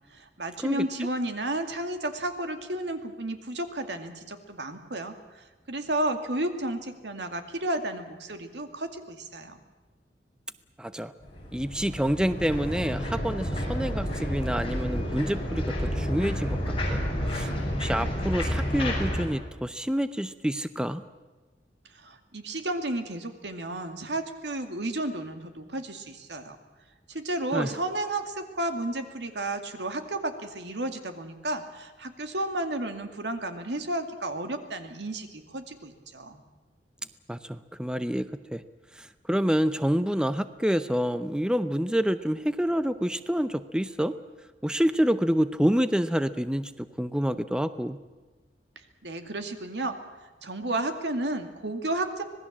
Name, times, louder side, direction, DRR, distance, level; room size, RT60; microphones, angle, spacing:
voice 1, 0.1-9.5 22.0-26.6 27.1-36.4 49.0-50.0 50.4-52.2, right 1 dB, 85° right, 6 dB, 2.3 m, -32 dB
voice 2, 10.8-11.1 11.5-17.0 17.3-17.5 17.8-21.0 27.5-27.7 37.3-38.6 39.3-44.2 44.6-48.0, equal, 5° right, 12 dB, 0.6 m, -27 dB
sound 1, 11.2-19.3, equal, 30° left, 6.6 m, -30 dB
25.5 x 19.5 x 7.4 m, 1.2 s
head